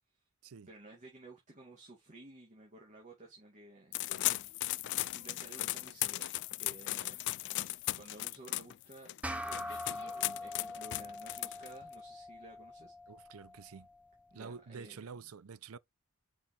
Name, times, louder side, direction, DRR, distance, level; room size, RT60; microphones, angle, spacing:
voice 1, 0.7-4.4 5.1-7.3 8.0-12.9 14.3-15.1, right 2 dB, 35° right, 2.2 m, -54 dB
sound 1, 3.9-11.9, left 17 dB, 55° left, 0.3 m, -37 dB
sound 2, 9.2-14.0, left 1 dB, 5° right, 0.7 m, -43 dB
voice 2, 13.1-13.9 14.3-15.8, right 5 dB, 75° right, 0.5 m, -48 dB
6.1 x 5.7 x 3.2 m
head